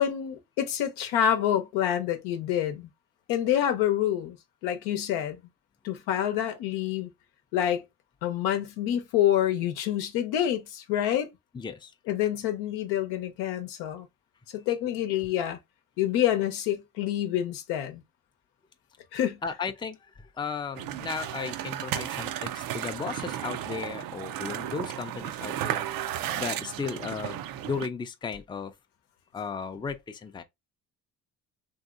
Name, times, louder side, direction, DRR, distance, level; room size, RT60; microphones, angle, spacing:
voice 1, 0.0-2.9 3.3-4.4 4.6-5.4 5.8-7.1 7.5-7.8 8.2-11.3 12.1-14.1 14.5-15.6 16.0-18.0 19.1-19.4, left 11 dB, 85° left, 0.8 m, -27 dB
voice 2, 11.5-11.9 19.4-25.9 26.4-28.7 29.3-30.4, left 5 dB, 10° left, 0.4 m, -35 dB
sound 1, 20.8-27.9, right 11 dB, 60° right, 0.5 m, -34 dB
3.0 x 2.8 x 2.4 m
supercardioid pair, 70°, 38 cm